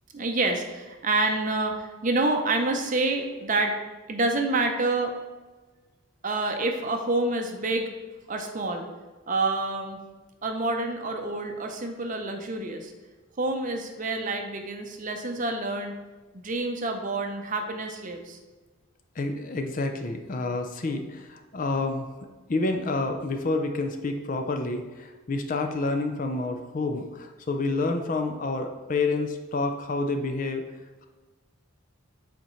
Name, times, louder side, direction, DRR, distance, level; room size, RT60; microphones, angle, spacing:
voice 1, 0.1-3.8 4.1-5.1 6.2-7.9 8.3-8.9 9.3-10.0 10.4-12.9 13.4-16.0 16.3-18.4, right 2 dB, 35° right, 4 dB, 0.6 m, -27 dB
voice 2, 19.2-22.1 22.5-30.6, left 3 dB, 40° left, 5 dB, 0.5 m, -28 dB
7.9 x 4.3 x 3.1 m, 1.3 s
head